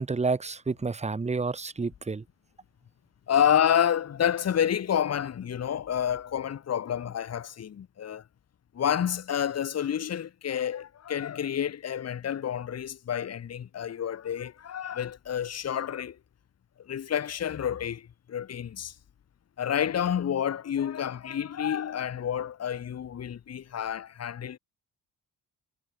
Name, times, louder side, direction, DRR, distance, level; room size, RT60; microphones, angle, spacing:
voice 1, 0.0-2.2, right 4 dB, 15° right, 1.3 m, -29 dB
voice 2, 3.3-8.2 8.7-16.2 16.9-18.9 19.6-24.6, left 9 dB, 40° left, 1.3 m, -29 dB
cardioid pair, 130°, 38 cm